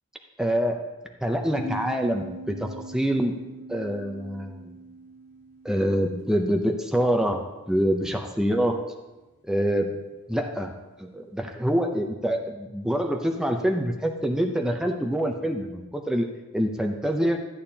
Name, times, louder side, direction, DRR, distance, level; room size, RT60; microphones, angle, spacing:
voice 1, 0.4-0.8 1.2-3.4 3.7-4.8 5.6-8.8 9.4-10.0 10.3-10.7 11.0-17.4, equal, 5° right, 3 dB, 0.5 m, -26 dB
sound 1, 1.6-6.9, equal, 15° left, 2.9 m, -41 dB
13.5 x 8.6 x 2.8 m, 1.1 s
head